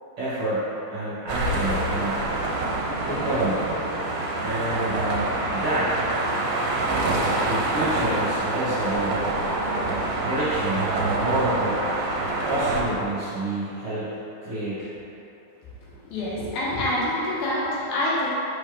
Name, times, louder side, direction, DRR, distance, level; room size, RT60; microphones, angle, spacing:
voice 1, 0.2-2.2 3.0-3.8 4.4-6.0 7.4-9.1 10.2-12.2 12.4-14.2 14.4-14.9, right 1 dB, 50° right, -13 dB, 1.8 m, -28 dB
sound 1, 1.3-12.8, right 2 dB, 75° right, 2.3 m, -26 dB
voice 2, 16.1-18.3, left 1 dB, 75° left, -7 dB, 3.0 m, -26 dB
6.0 x 5.5 x 3.4 m, 3.0 s
omnidirectional pair, 4.6 m